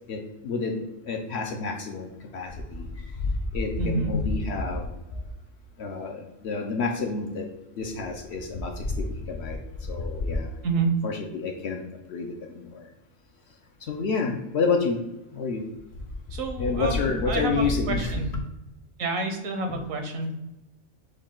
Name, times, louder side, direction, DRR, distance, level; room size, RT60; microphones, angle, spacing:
voice 1, 0.4-0.8 1.1-2.9 3.5-4.9 5.8-7.5 7.8-9.6 9.9-10.5 11.0-11.8 12.1-12.3 12.6-12.8 13.9-15.0 15.3-15.6 16.6-18.1 19.7-19.8, left 4 dB, 65° left, 3 dB, 0.7 m, -28 dB
voice 2, 3.8-4.2 10.6-10.9 16.3-18.4 19.0-20.3, right 3 dB, 70° right, 5 dB, 1.1 m, -29 dB
6.3 x 2.3 x 3.6 m, 0.96 s
omnidirectional pair, 1.4 m